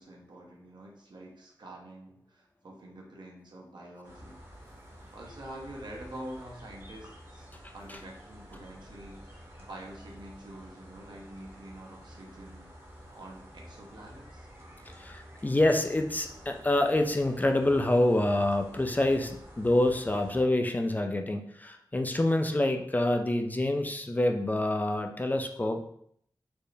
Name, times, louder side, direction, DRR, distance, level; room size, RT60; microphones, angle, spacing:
voice 1, 0.0-4.4 5.1-7.5 7.7-12.7 13.1-14.5, right 1 dB, 70° right, -1 dB, 0.8 m, -46 dB
sound 1, 4.0-20.4, equal, 35° right, 0.9 m, -50 dB
voice 2, 14.9-25.8, left 1 dB, 20° left, 4 dB, 0.3 m, -27 dB
4.4 x 2.1 x 3.2 m, 0.68 s
wide cardioid pair, 95°, 8 cm